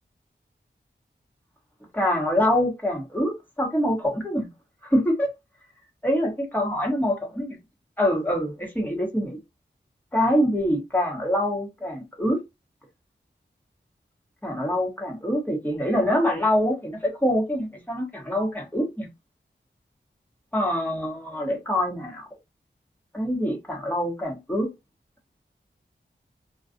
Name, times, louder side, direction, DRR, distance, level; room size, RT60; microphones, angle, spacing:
voice 1, 1.9-4.5 4.8-5.3 6.0-7.6 8.0-9.4 10.1-12.4 14.4-19.1 20.5-22.3 23.1-24.7, equal, 10° left, 1.2 m, -25 dB
2.3 x 2.3 x 2.6 m
cardioid pair, 45°, 19 cm